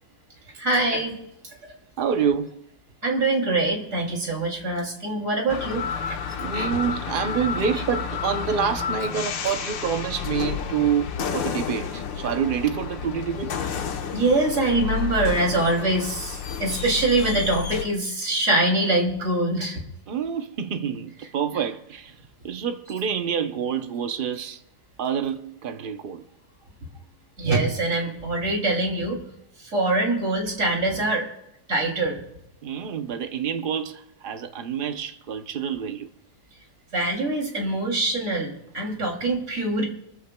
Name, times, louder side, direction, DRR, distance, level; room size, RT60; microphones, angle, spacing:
voice 1, 0.5-1.2 3.0-6.2 6.5-6.7 14.1-19.8 27.4-29.2 29.6-31.2 31.7-32.2 36.9-39.8, right 2 dB, 45° right, 3.2 m, -24 dB
voice 2, 2.0-2.6 3.4-3.5 6.4-13.6 20.1-22.2 22.4-24.6 25.0-26.2 32.6-36.1, right 7 dB, 85° right, 0.4 m, -27 dB
sound 1, 5.5-17.8, left 7 dB, 85° left, 1.7 m, -31 dB
24.5 x 14.0 x 2.3 m
omnidirectional pair, 2.0 m